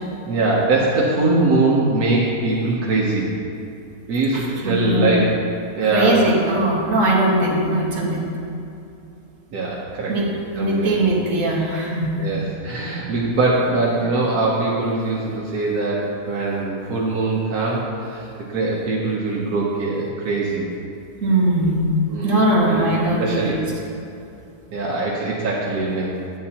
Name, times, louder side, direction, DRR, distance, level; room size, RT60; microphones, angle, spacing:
voice 1, 0.2-3.3 4.1-5.3 5.7-6.3 9.5-10.2 10.6-10.9 12.2-20.7 22.1-22.8 23.2-23.6 24.7-26.2, right 3 dB, 80° right, -4 dB, 1.5 m, -22 dB
voice 2, 4.3-5.2 5.8-8.2 10.1-10.3 10.6-12.1 21.2-21.9 22.2-23.5, right 1 dB, 55° right, -4 dB, 1.8 m, -20 dB
9.4 x 8.6 x 2.9 m, 2.6 s
omnidirectional pair, 1.6 m